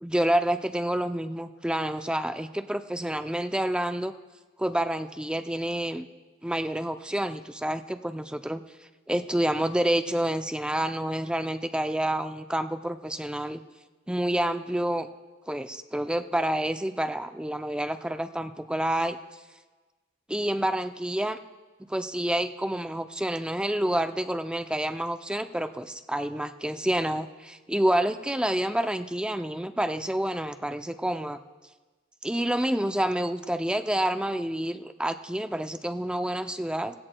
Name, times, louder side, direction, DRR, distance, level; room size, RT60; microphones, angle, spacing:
voice 1, 0.0-4.1 4.6-6.0 6.4-8.6 9.1-13.6 14.1-15.1 15.5-19.2 20.3-21.4 21.9-31.4 32.2-36.9, right 1 dB, 5° right, 8 dB, 0.4 m, -28 dB
16.5 x 16.0 x 2.2 m, 1.2 s
head